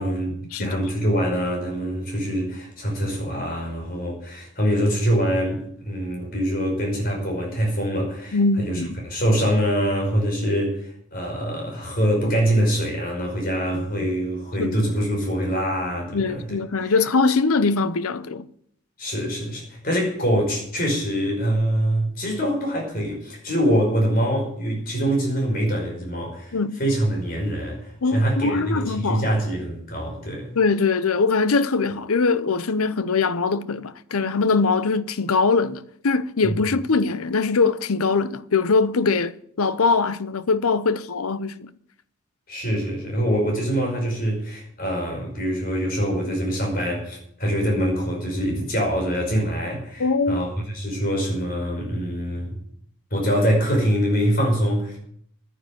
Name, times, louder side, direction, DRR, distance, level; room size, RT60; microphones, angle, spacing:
voice 1, 0.0-16.9 19.0-30.5 36.4-36.6 42.5-50.5 50.7-52.6 53.1-55.0, equal, 40° left, 5.3 m, -24 dB
voice 2, 8.3-9.0 14.6-14.8 16.1-18.4 26.5-26.8 28.0-29.3 30.6-41.7 50.0-50.5, left 4 dB, 80° left, 0.7 m, -22 dB
11.0 x 9.8 x 7.8 m
head